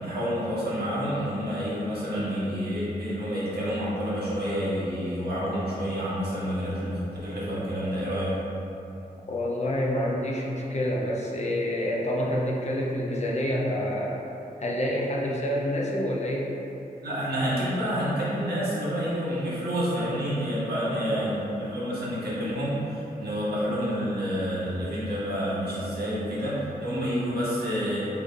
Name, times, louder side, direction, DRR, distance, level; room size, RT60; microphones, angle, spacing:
voice 1, 0.0-8.4 17.0-28.1, equal, 80° right, -9 dB, 1.4 m, -29 dB
voice 2, 9.3-14.3 14.6-16.5 20.7-21.4, left 1 dB, 45° left, -3 dB, 0.6 m, -28 dB
6.0 x 2.6 x 2.6 m, 2.9 s
wide cardioid pair, 110°, 16 cm